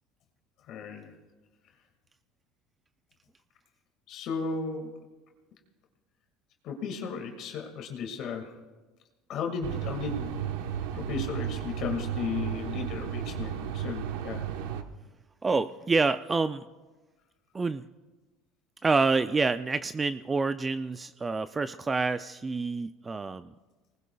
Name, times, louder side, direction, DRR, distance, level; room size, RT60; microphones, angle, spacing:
voice 1, 0.7-1.1 4.1-5.0 6.6-8.6 9.3-10.6 10.9-14.4, left 5 dB, 55° left, 3 dB, 1.9 m, -35 dB
sound 1, 9.6-14.8, right 9 dB, 85° right, 1.0 m, -34 dB
voice 2, 15.4-16.6 17.5-17.8 18.8-23.5, right 4 dB, 20° right, 11 dB, 0.4 m, -27 dB
24.0 x 19.5 x 2.3 m, 1.2 s
cardioid pair, 125°, 0 cm